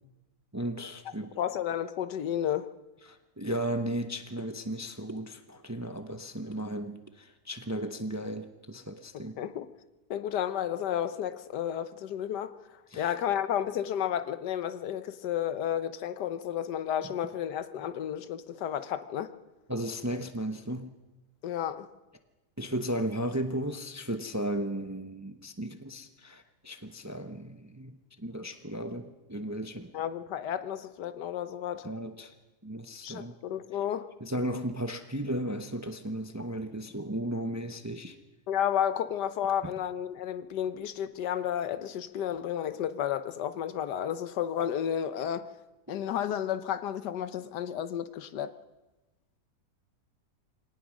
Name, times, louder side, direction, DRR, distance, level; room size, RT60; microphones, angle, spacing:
voice 1, 0.5-1.4 3.1-9.4 12.9-13.1 19.7-20.9 22.6-29.9 31.8-32.3 32.6-33.4 34.2-38.2, right 1 dB, 15° right, 0.6 m, -35 dB
voice 2, 1.4-2.7 9.1-9.7 10.1-12.5 13.0-19.3 21.4-21.9 29.9-31.9 33.0-34.1 38.5-45.5 45.9-48.5, left 10 dB, 90° left, 1.5 m, -32 dB
22.5 x 18.0 x 6.3 m
omnidirectional pair, 1.7 m